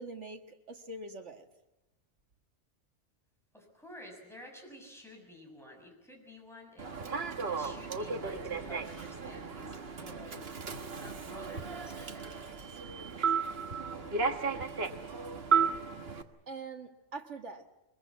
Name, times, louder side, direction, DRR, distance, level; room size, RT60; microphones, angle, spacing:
voice 1, 0.0-1.5 16.5-17.7, right 3 dB, 75° right, 5 dB, 2.0 m, -43 dB
voice 2, 3.5-7.0 7.5-13.6, left 1 dB, ahead, 1 dB, 6.6 m, -52 dB
Human voice / Subway metro underground, 6.8-16.2, right 5 dB, 55° right, 1.6 m, -34 dB
22.5 x 21.5 x 8.4 m, 0.96 s
omnidirectional pair, 1.2 m